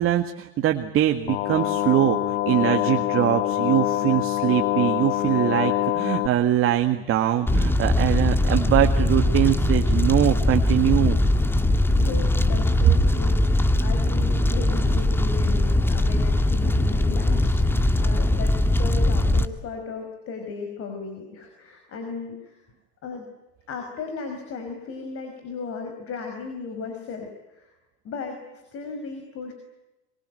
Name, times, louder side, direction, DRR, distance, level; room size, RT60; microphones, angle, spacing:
voice 1, 0.0-11.2, right 12 dB, 40° right, 5 dB, 1.9 m, -22 dB
sound 1, 1.3-6.3, left 15 dB, 60° left, 1.6 m, -25 dB
Fire, 7.5-19.5, left 1 dB, 5° left, 1.5 m, -21 dB
voice 2, 11.9-22.6 23.0-23.3 23.7-27.8 28.0-29.5, left 4 dB, 45° left, 5 dB, 5.6 m, -36 dB
25.0 x 23.0 x 9.3 m, 1.0 s
supercardioid pair, 105°, 33 cm